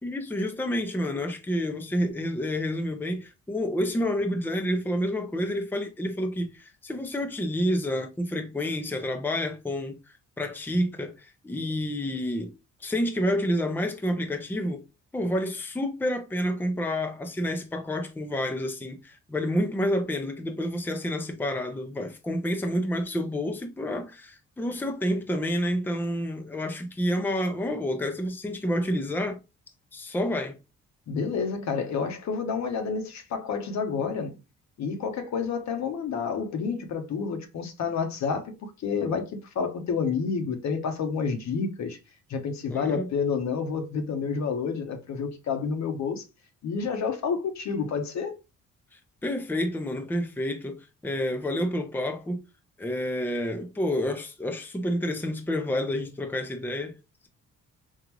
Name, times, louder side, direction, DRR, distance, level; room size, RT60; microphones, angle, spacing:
voice 1, 0.0-10.0 10.4-12.5 12.8-14.8 15.1-29.4 29.9-30.6 42.7-43.1 48.9-52.4 52.8-57.0, equal, 5° left, 0.6 m, -29 dB
voice 2, 31.1-34.3 34.8-42.0 42.3-46.2 46.6-48.4, left 5 dB, 65° left, 0.9 m, -29 dB
3.6 x 2.4 x 2.9 m
cardioid pair, 90°, 30 cm